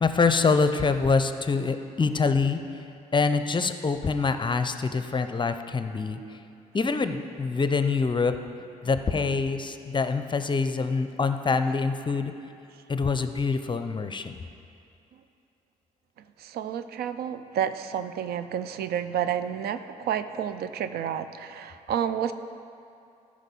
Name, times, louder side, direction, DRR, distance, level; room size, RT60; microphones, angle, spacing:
voice 1, 0.0-2.6 3.1-6.2 6.7-8.3 8.8-12.3 12.9-14.4, left 4 dB, 30° left, 9 dB, 0.6 m, -25 dB
voice 2, 16.4-22.3, right 9 dB, 65° right, 11 dB, 0.5 m, -30 dB
13.0 x 5.1 x 5.4 m, 2.5 s
hypercardioid pair, 50°, 17 cm